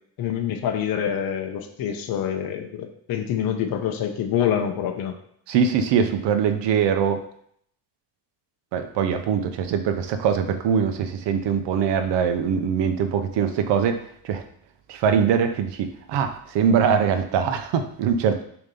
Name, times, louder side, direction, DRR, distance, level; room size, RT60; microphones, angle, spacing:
voice 1, 0.2-5.1, left 9 dB, 55° left, 4 dB, 0.8 m, -26 dB
voice 2, 5.5-7.2 8.7-14.4 14.9-18.4, right 7 dB, 80° right, 8 dB, 0.9 m, -22 dB
7.0 x 3.0 x 5.3 m, 0.66 s
cardioid pair, 160°, 41 cm